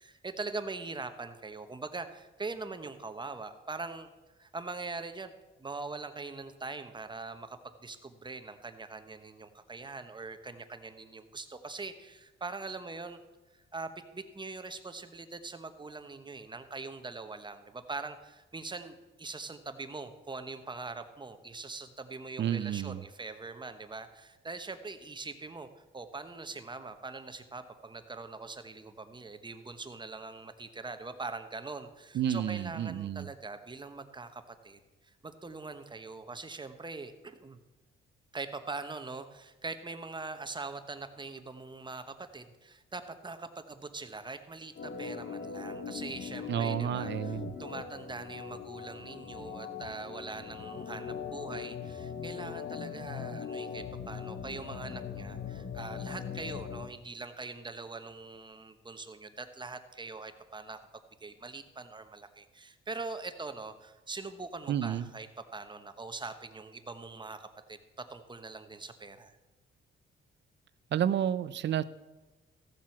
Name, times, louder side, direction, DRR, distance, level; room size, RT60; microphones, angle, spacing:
voice 1, 0.0-4.1 4.4-13.2 13.5-25.7 25.9-34.8 35.2-37.6 38.3-60.8 61.2-65.3 65.5-69.3, right 3 dB, 20° right, 9 dB, 1.0 m, -42 dB
voice 2, 22.4-23.0 32.1-33.3 46.5-47.5 64.7-65.1 70.9-71.8, right 10 dB, 60° right, 16 dB, 0.6 m, -30 dB
Organ, 44.7-56.9, left 6 dB, 50° left, 0.9 m, -40 dB
14.5 x 7.5 x 5.9 m, 1.1 s
cardioid pair, 90°, 21 cm